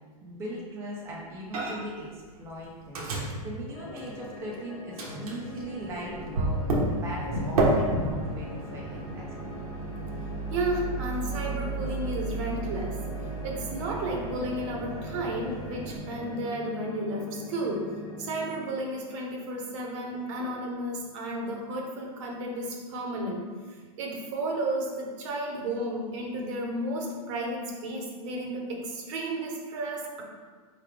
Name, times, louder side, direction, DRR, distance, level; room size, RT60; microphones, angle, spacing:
voice 1, 0.2-6.6 6.8-9.3, right 1 dB, 15° right, -5 dB, 0.6 m, -39 dB
Microwave oven, 1.5-2.0 2.3-4.6 5.0-16.0, right 2 dB, 75° right, 1.1 m, -32 dB
sound 1, 3.7-18.6, left 3 dB, 75° left, 1.1 m, -43 dB
voice 2, 10.5-13.0 13.2-17.9 18.2-23.4 24.0-30.2, right 1 dB, 50° right, 0 dB, 1.0 m, -33 dB
4.6 x 3.3 x 3.4 m, 1.5 s
hypercardioid pair, 140°, 19 cm